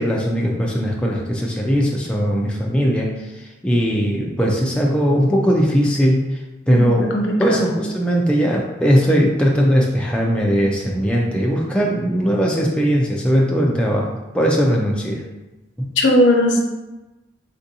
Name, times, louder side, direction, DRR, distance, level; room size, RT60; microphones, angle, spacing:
voice 1, 0.0-6.4 6.7-7.1 7.4-15.2 15.8-15.9, equal, 5° left, -2 dB, 0.3 m, -19 dB
voice 2, 6.7-7.7 16.0-16.6, left 1 dB, 80° left, 1 dB, 0.6 m, -18 dB
3.4 x 2.6 x 2.6 m, 1.0 s
head